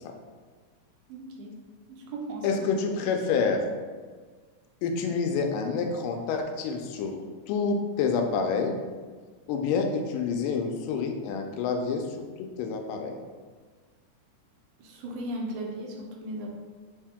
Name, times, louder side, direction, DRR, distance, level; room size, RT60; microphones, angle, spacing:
voice 1, 1.1-1.6 1.9-2.5 14.8-16.6, right 1 dB, 75° right, 0 dB, 2.0 m, -36 dB
voice 2, 2.4-3.6 4.8-7.2 7.5-8.8 9.5-12.1 12.4-13.2, left 5 dB, 85° left, 4 dB, 2.1 m, -28 dB
5.1 x 2.7 x 3.5 m, 1.5 s
omnidirectional pair, 3.7 m